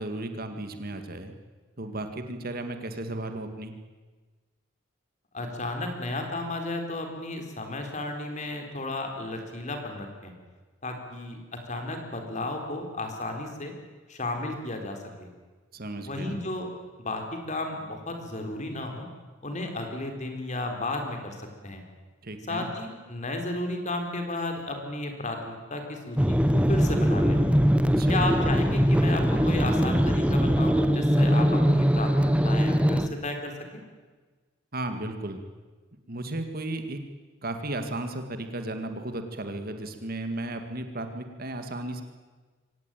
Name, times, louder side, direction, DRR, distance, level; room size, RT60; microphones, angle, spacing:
voice 1, 0.0-1.3 1.8-3.7 15.7-16.4 22.2-22.7 28.0-28.2 34.7-35.4 36.1-37.0 37.4-42.0, right 2 dB, 50° right, 7 dB, 2.1 m, -34 dB
voice 2, 5.3-10.3 10.8-13.7 14.1-15.3 16.0-16.7 17.0-19.1 19.4-21.8 22.5-26.4 26.7-27.4 28.1-33.8, left 2 dB, 35° left, 4 dB, 4.1 m, -33 dB
sound 1, 26.2-33.1, equal, 5° right, 0.9 m, -22 dB
24.5 x 18.5 x 9.2 m, 1.3 s
head